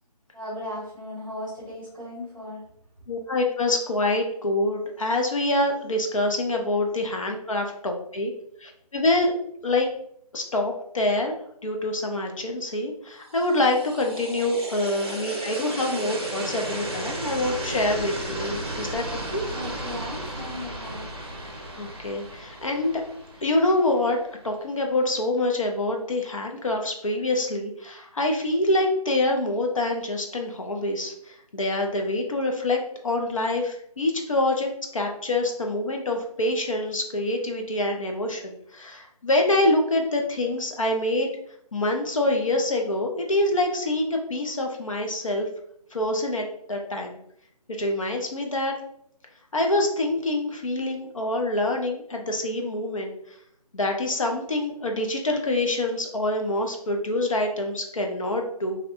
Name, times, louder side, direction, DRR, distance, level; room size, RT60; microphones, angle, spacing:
voice 1, 0.3-2.6 19.5-21.0, left 1 dB, 10° left, -19 dB, 0.9 m, -36 dB
voice 2, 3.1-8.3 8.6-9.3 9.6-9.9 10.3-11.3 11.6-19.0 19.3-19.4 21.8-23.0 23.4-24.2 24.4-41.3 41.7-45.5 45.9-47.1 47.7-48.7 49.5-53.1 53.7-58.8, left 2 dB, 50° left, 2 dB, 0.5 m, -26 dB
sound 1, 13.3-24.3, right 1 dB, 40° right, 0.6 m, -34 dB
2.7 x 2.1 x 4.0 m, 0.71 s
figure-of-eight pair, 175°, 21 cm